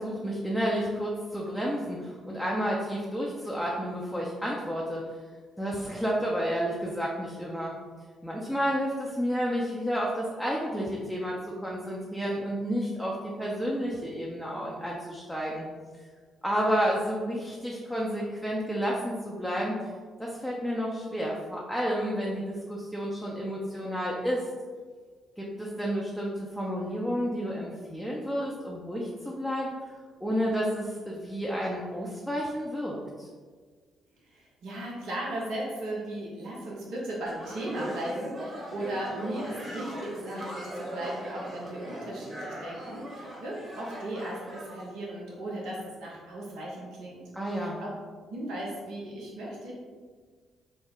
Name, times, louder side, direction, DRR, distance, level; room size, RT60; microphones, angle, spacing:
voice 1, 0.0-5.1 5.6-7.7 8.2-15.7 16.4-19.7 20.2-24.4 25.4-29.7 30.2-33.3 47.3-47.8, equal, ahead, -4 dB, 0.6 m, -31 dB
voice 2, 34.2-47.2 47.5-47.9 48.3-49.7, right 1 dB, 65° right, -5 dB, 0.8 m, -37 dB
sound 1, 37.3-44.8, equal, 30° right, 1.3 m, -39 dB
3.2 x 2.1 x 3.7 m, 1.5 s
figure-of-eight pair, 45°, 0 cm